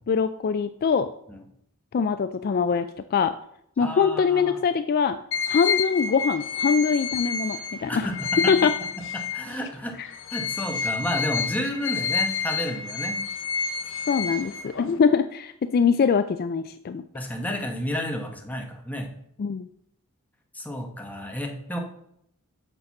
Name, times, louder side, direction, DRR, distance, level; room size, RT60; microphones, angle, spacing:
voice 1, 0.1-1.1 1.9-3.3 3.8-5.2 5.5-8.1 8.5-8.7 10.0-10.1 14.1-17.0 19.4-19.7, left 6 dB, 45° left, 11 dB, 0.3 m, -23 dB
voice 2, 3.8-4.6 7.9-8.5 9.1-9.9 10.3-13.2 17.1-19.1 20.5-21.8, equal, 5° left, 2 dB, 1.1 m, -31 dB
sound 1, 5.3-9.7 10.1-15.0, left 5 dB, 60° left, 0.8 m, -29 dB
6.7 x 6.6 x 5.8 m, 0.72 s
head